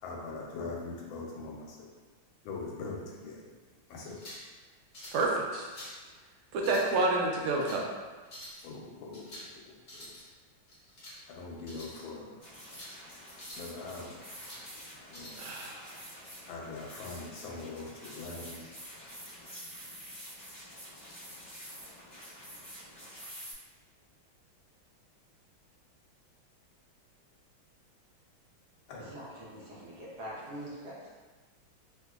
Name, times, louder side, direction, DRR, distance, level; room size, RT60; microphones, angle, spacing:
voice 1, 0.0-1.9 2.4-3.5 3.9-4.2 8.6-10.1 11.3-12.4 13.5-14.3 15.1-15.4 16.5-18.6 28.9-29.1, left 3 dB, 80° left, -2 dB, 1.3 m, -42 dB
sound 1, 4.0-4.5 4.9-5.3 5.6-6.0 6.5-7.0 7.4-7.8 8.2-8.6 9.1-9.5 9.8-10.2 10.7-11.2 11.6-12.0 12.4-12.9 13.3-13.7 14.1-14.6 15.1-15.5, left 1 dB, 45° left, 0.8 m, -47 dB
voice 2, 5.1-5.7 6.5-7.8 15.4-15.9, right 2 dB, 90° right, -1 dB, 1.5 m, -29 dB
sound 2, 12.4-23.5, equal, 15° left, 1.0 m, -48 dB
voice 3, 29.0-30.9, equal, 65° right, -7 dB, 1.1 m, -43 dB
3.4 x 2.8 x 2.3 m, 1.3 s
omnidirectional pair, 2.2 m